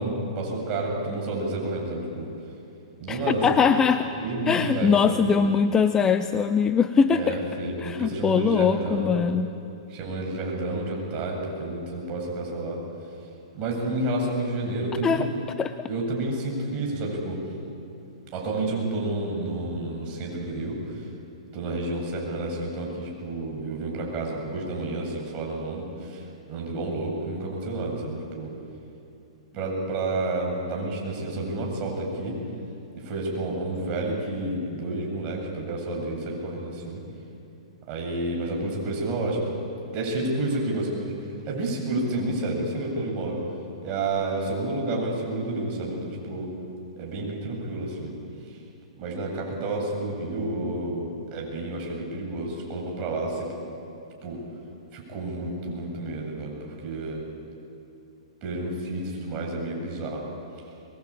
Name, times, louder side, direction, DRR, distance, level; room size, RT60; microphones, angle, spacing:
voice 1, 0.0-2.3 3.0-3.5 4.2-5.5 7.1-9.2 9.9-12.8 13.5-15.3 15.9-17.4 18.3-21.1 21.5-26.2 26.5-28.5 29.5-32.4 32.9-37.0 37.9-39.5 39.9-41.1 41.5-43.4 43.8-46.5 47.0-48.1 48.5-48.6 49.0-53.5 54.2-54.4 54.9-57.2 58.4-60.3, right 2 dB, 35° right, -1 dB, 7.8 m, -30 dB
voice 2, 3.1-4.1 4.5-7.4 7.8-9.6 15.0-15.3 15.6-15.7, left 6 dB, 15° left, 10 dB, 0.8 m, -22 dB
23.0 x 22.0 x 8.8 m, 2.7 s
hypercardioid pair, 130°, 3 cm